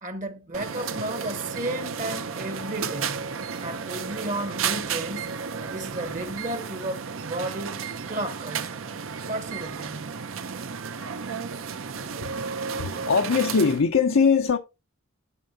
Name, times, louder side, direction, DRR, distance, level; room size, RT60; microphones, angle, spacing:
voice 1, 0.0-3.2 3.6-5.3 5.6-7.8 8.1-8.8 9.3-10.2, right 1 dB, 40° right, 1.0 m, -33 dB
sound 1, 0.5-13.8, right 6 dB, 70° right, 0.7 m, -33 dB
voice 2, 12.0-12.3 12.7-14.6, left 5 dB, 65° left, 0.6 m, -22 dB
11.0 x 4.7 x 2.7 m
head